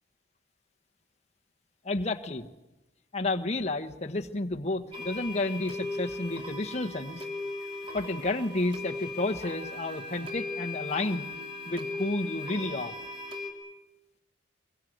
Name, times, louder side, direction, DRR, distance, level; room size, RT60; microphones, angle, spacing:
voice 1, 1.8-2.5 3.1-7.2 7.9-11.3 11.7-12.9, left 2 dB, 35° left, 3 dB, 1.3 m, -31 dB
sound 1, 4.9-13.5, left 2 dB, 30° right, 2.9 m, -38 dB
24.0 x 23.0 x 8.0 m, 0.97 s
head